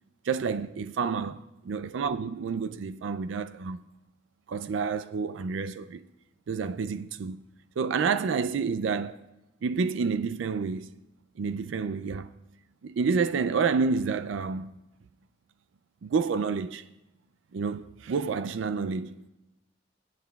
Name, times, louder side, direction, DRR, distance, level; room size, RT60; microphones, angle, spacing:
voice 1, 0.2-1.3 1.7-3.8 4.5-6.0 6.5-7.4 7.8-9.2 9.6-10.9 11.4-12.3 12.8-14.8 16.0-16.8 17.5-19.3, right 5 dB, 70° right, 0.4 m, -29 dB
22.5 x 8.8 x 2.3 m
head